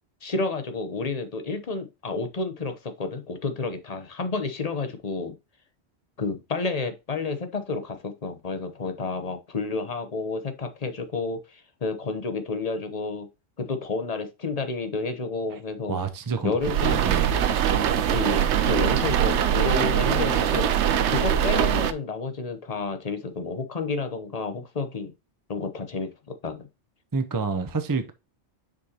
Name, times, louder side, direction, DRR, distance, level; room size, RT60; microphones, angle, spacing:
voice 1, 0.2-5.4 6.2-13.3 13.6-16.0 16.4-17.0 17.3-17.5 18.1-25.1 25.5-26.7, left 3 dB, 35° left, 1.0 m, -30 dB
voice 2, 15.9-16.5 16.8-17.3 27.1-28.1, right 4 dB, 20° right, 0.6 m, -28 dB
sound 1, 16.6-21.9, right 9 dB, 75° right, 0.9 m, -22 dB
6.8 x 5.1 x 2.9 m
omnidirectional pair, 1.2 m